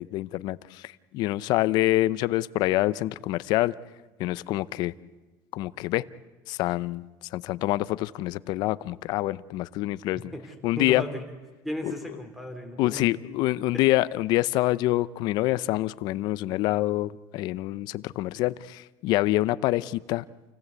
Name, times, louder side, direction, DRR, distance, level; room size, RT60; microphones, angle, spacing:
voice 1, 0.0-3.7 4.2-4.9 5.5-6.0 6.5-7.0 7.3-10.3 10.6-11.0 11.8-11.9 12.8-20.2, left 17 dB, 55° left, 17 dB, 0.7 m, -26 dB
voice 2, 10.3-11.2 11.6-13.2 13.7-13.8, equal, ahead, 6 dB, 3.2 m, -36 dB
29.0 x 16.5 x 8.2 m, 1.2 s
cardioid pair, 150°, 8 cm